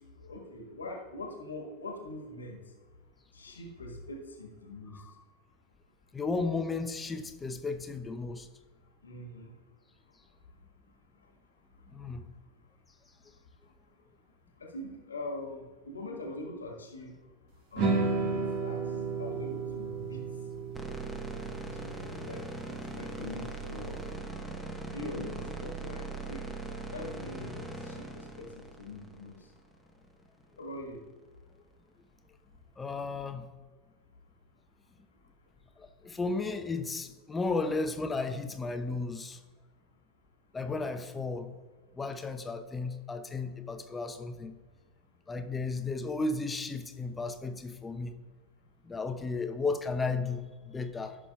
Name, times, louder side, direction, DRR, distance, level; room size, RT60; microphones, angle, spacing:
voice 1, 0.1-2.6 3.3-5.0 9.0-9.5 14.6-17.1 17.7-18.8 19.2-20.2 21.8-24.0 24.9-26.4 26.9-28.5 28.8-29.3 30.6-31.0, left 2 dB, 80° left, 1 dB, 1.6 m, -42 dB
voice 2, 6.1-8.5 11.9-12.2 32.8-33.5 35.8-39.4 40.5-41.5 41.9-44.5 45.3-48.1 48.8-51.2, left 3 dB, 15° left, 7 dB, 0.8 m, -34 dB
sound 1, 17.8-24.0, right 4 dB, 50° right, 1.7 m, -34 dB
sound 2, 20.7-29.9, right 2 dB, 10° right, 1.2 m, -40 dB
15.0 x 6.2 x 2.4 m, 1.4 s
figure-of-eight pair, 85°, 0 cm